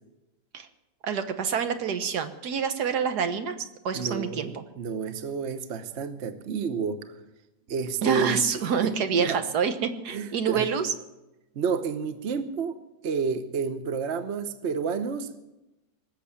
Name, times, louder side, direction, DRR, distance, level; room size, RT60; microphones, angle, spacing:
voice 1, 1.0-4.6 8.0-10.9, right 6 dB, 70° right, 9 dB, 1.7 m, -27 dB
voice 2, 3.9-7.1 7.7-8.5 9.2-9.4 10.1-10.7 11.5-12.8 13.0-15.4, right 5 dB, 45° right, 10 dB, 1.1 m, -30 dB
19.5 x 7.6 x 8.6 m, 0.98 s
omnidirectional pair, 1.8 m